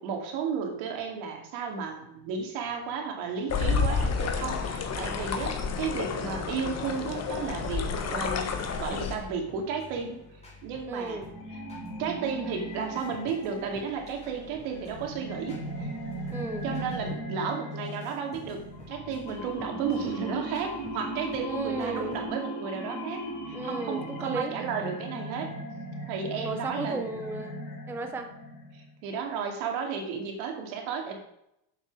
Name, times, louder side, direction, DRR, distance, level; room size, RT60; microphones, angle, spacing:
voice 1, 0.0-8.5 8.8-10.2 10.6-11.2 11.5-11.6 12.0-15.9 16.6-25.5 26.1-27.2 28.7-31.2, right 6 dB, 75° right, 2 dB, 2.5 m, -33 dB
sound 1, 3.5-9.2, left 5 dB, 30° left, 1.3 m, -30 dB
sound 2, 8.9-17.2 17.7-22.3, left 1 dB, 15° left, 3.9 m, -51 dB
voice 2, 10.9-11.3 16.3-16.6 21.4-22.2 23.5-24.5 26.4-27.6 27.9-28.3, right 3 dB, 5° right, 6 dB, 0.5 m, -34 dB
sound 3, 11.0-28.9, right 1 dB, 50° left, 4.3 m, -38 dB
7.7 x 7.2 x 6.0 m, 0.81 s
cardioid pair, 145°, 49 cm